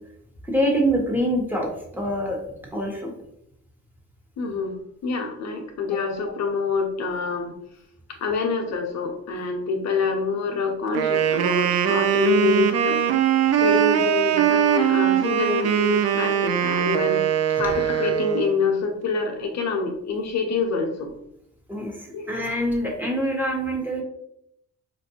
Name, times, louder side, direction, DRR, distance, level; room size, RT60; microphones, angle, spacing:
voice 1, 0.4-1.7 1.9-2.4 2.7-3.1 21.7-24.0, equal, 5° right, -1 dB, 1.1 m, -25 dB
voice 2, 4.4-7.5 8.2-13.0 13.6-21.1 22.1-22.3, left 4 dB, 65° left, 2 dB, 0.7 m, -26 dB
Wind instrument woodwind instrument, 10.9-18.6, right 10 dB, 55° right, 0.5 m, -21 dB
4.5 x 2.5 x 2.8 m, 0.75 s
cardioid pair, 90°, 30 cm